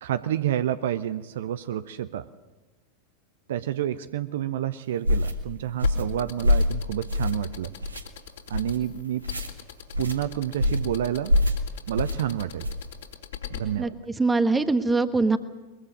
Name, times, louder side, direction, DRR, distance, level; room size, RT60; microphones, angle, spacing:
voice 1, 0.0-2.3 3.5-7.7 8.5-9.3 10.0-11.4 11.9-12.7 13.5-13.9, right 11 dB, 60° right, 13 dB, 0.6 m, -29 dB
sound 1, 5.0-5.3 5.8-6.1 6.4-6.7 7.1-7.5 7.8-8.0 8.5-8.8 9.2-9.5 9.9-10.2 10.6-10.9 11.3-11.6 12.0-12.2 12.6-12.9, left 1 dB, 80° right, 1.7 m, -24 dB
sound 2, 5.8-13.6, left 10 dB, 60° left, 3.2 m, -39 dB
voice 2, 13.8-15.4, right 3 dB, 10° right, 11 dB, 1.3 m, -23 dB
22.0 x 22.0 x 6.5 m, 1.2 s
figure-of-eight pair, 90°, 0 cm